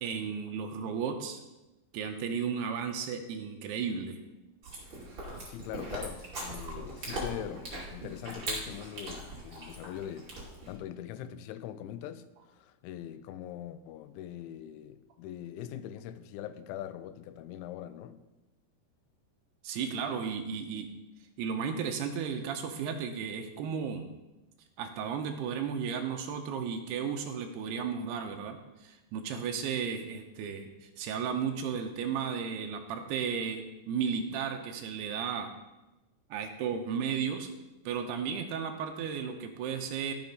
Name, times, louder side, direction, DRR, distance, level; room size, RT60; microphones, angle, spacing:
voice 1, 0.0-1.4 1.9-4.2 19.6-20.9 21.4-24.1 24.8-35.5 36.3-37.5 37.9-40.1, right 6 dB, 85° right, 5 dB, 2.4 m, -34 dB
Chewing mastication, 4.6-10.8, right 1 dB, 30° right, 2.8 m, -40 dB
voice 2, 5.5-10.3 10.7-18.2, left 11 dB, 85° left, 12 dB, 3.0 m, -42 dB
13.0 x 5.9 x 5.3 m, 1.0 s
omnidirectional pair, 5.3 m